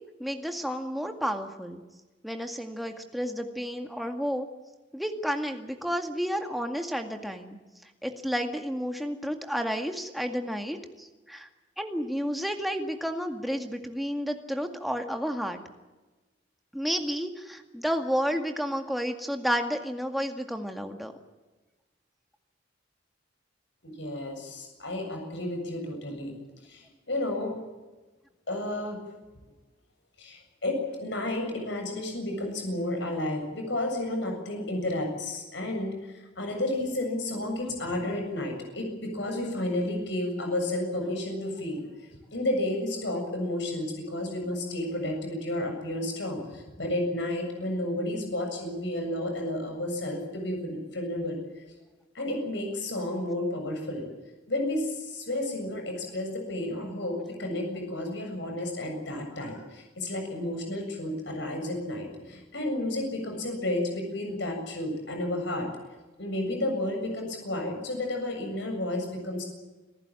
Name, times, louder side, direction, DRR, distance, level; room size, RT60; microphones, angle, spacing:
voice 1, 0.2-1.8 2.2-4.5 4.9-11.5 11.8-15.6 16.7-21.1, equal, ahead, 4 dB, 2.1 m, -31 dB
voice 2, 23.8-26.3 26.7-27.5 28.5-29.0 30.2-41.8 42.3-51.4 52.1-54.0 54.5-65.7 66.2-69.4, left 1 dB, 65° left, 3 dB, 7.5 m, -31 dB
27.5 x 15.0 x 9.0 m, 1.2 s
head